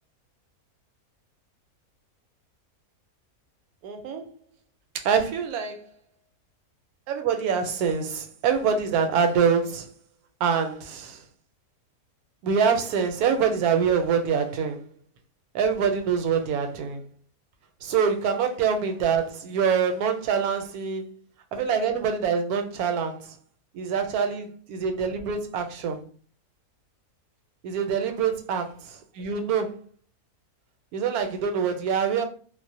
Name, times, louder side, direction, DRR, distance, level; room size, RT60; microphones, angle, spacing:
voice 1, 3.8-4.3 4.9-5.9 7.1-9.9 10.4-11.2 12.4-14.8 15.5-17.0 17.8-21.0 21.5-23.4 23.7-26.1 27.6-29.8 30.9-32.3, right 6 dB, 85° right, 1.1 m, -25 dB
2.5 x 2.0 x 2.5 m
omnidirectional pair, 1.5 m